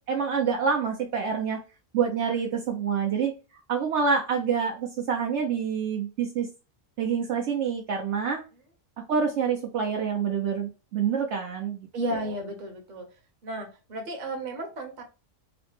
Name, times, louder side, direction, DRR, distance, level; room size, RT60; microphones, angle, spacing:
voice 1, 0.1-1.6 1.9-3.3 3.7-6.5 7.0-8.4 9.1-12.2, right 6 dB, 65° right, 1 dB, 0.8 m, -27 dB
voice 2, 11.9-13.1 13.4-15.0, right 1 dB, 40° right, 3 dB, 0.9 m, -33 dB
4.0 x 2.1 x 3.1 m, 0.32 s
omnidirectional pair, 1.4 m